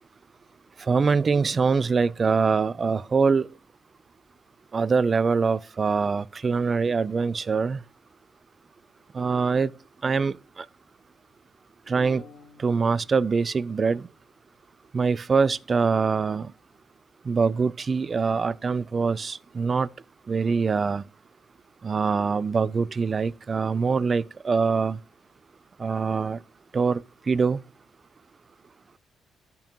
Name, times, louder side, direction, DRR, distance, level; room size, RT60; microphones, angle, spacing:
voice 1, 0.9-3.5 4.7-7.8 9.1-9.7 10.0-10.7 11.9-12.2 12.6-14.1 14.9-16.5 17.3-19.9 20.3-21.0 21.8-25.0 25.8-26.4 26.7-27.6, right 5 dB, 40° right, 0.4 m, -24 dB
sound 1, 12.0-14.3, left 5 dB, 35° left, 2.7 m, -51 dB
13.5 x 5.3 x 2.9 m
cardioid pair, 85°, 0 cm